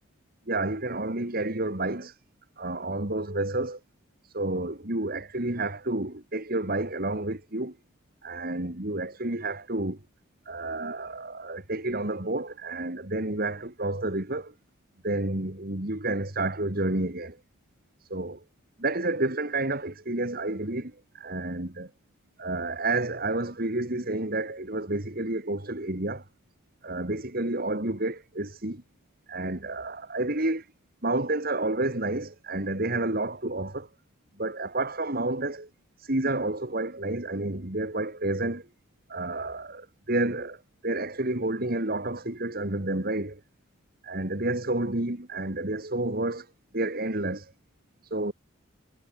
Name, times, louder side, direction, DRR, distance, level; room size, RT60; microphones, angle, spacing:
voice 1, 0.5-2.1 2.6-3.8 4.3-7.8 8.2-10.0 10.5-14.5 15.0-17.4 18.1-18.4 18.8-21.9 22.4-26.2 26.8-28.8 29.3-30.6 31.0-33.9 34.4-35.7 36.0-38.7 39.1-43.4 44.0-46.5 46.7-47.5 48.1-48.3, right 2 dB, 50° right, 2.8 m, -30 dB
head